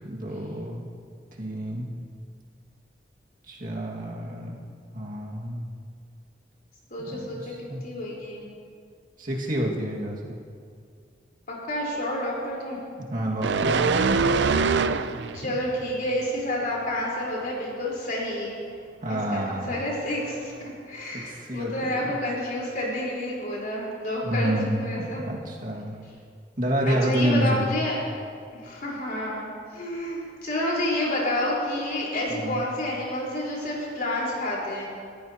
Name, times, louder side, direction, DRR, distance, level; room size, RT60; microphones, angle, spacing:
voice 1, 0.0-0.8 1.4-1.9 3.5-4.6 4.9-5.6 7.1-7.8 9.2-10.4 13.1-13.9 19.0-19.8 21.1-22.1 24.2-26.0 26.6-27.6 32.3-32.6, right 1 dB, 50° right, -2 dB, 2.0 m, -28 dB
voice 2, 6.9-7.5 7.8-8.4 11.5-12.8 15.3-18.6 19.1-20.5 20.9-25.3 26.8-28.0 28.6-34.9, left 1 dB, 55° left, -4 dB, 4.2 m, -29 dB
sound 1, 13.4-15.5 15.9-16.1, right 4 dB, 80° right, 0.5 m, -23 dB
20.5 x 14.0 x 2.9 m, 2.3 s
head